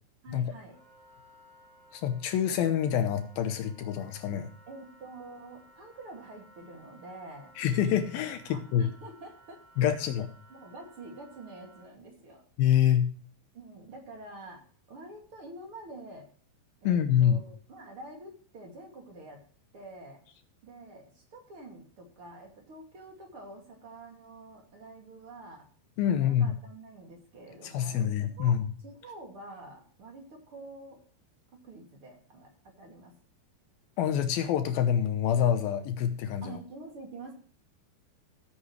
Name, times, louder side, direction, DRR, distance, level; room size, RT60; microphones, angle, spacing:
voice 1, 0.2-0.8 4.7-7.5 8.5-10.0 10.5-12.4 13.5-14.6 14.9-16.3 16.8-19.4 19.7-20.2 20.6-25.7 26.1-28.6 28.8-31.0 31.5-33.1 36.4-37.3, right 2 dB, 40° right, 1 dB, 2.5 m, -47 dB
Wind instrument woodwind instrument, 0.6-11.9, right 1 dB, 85° right, 6.4 m, -58 dB
voice 2, 1.9-4.5 7.6-8.9 9.8-10.3 12.6-13.1 16.8-17.4 26.0-26.6 27.6-28.7 34.0-36.6, left 9 dB, 80° left, 8 dB, 2.2 m, -26 dB
15.5 x 8.3 x 3.2 m, 0.43 s
omnidirectional pair, 5.2 m